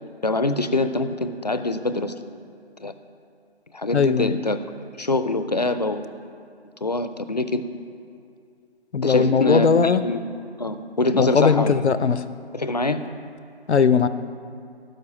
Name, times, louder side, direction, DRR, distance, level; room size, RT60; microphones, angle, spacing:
voice 1, 0.2-2.1 2.8-2.9 3.7-4.6 5.0-6.1 6.8-7.6 9.0-10.2 10.6-11.7 12.5-13.0, left 2 dB, 40° left, 11 dB, 0.4 m, -24 dB
voice 2, 3.9-4.3 8.9-10.0 11.1-12.2 13.7-14.1, left 6 dB, 85° left, 13 dB, 0.7 m, -19 dB
12.0 x 5.4 x 8.5 m, 2.4 s
figure-of-eight pair, 170°, 32 cm